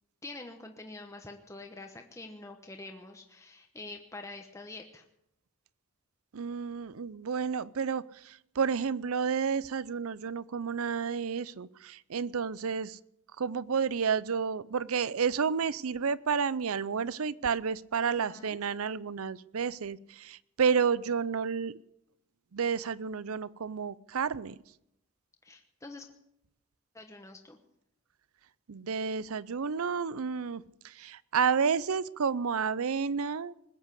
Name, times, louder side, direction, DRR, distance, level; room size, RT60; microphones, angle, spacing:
voice 1, 0.2-5.0 18.0-18.6 25.4-26.1 26.9-27.6, left 2 dB, 15° left, 3 dB, 1.0 m, -46 dB
voice 2, 6.3-13.0 13.4-21.7 22.5-24.6 28.7-33.5, right 6 dB, 75° right, 19 dB, 0.5 m, -31 dB
20.5 x 8.2 x 8.2 m, 0.80 s
head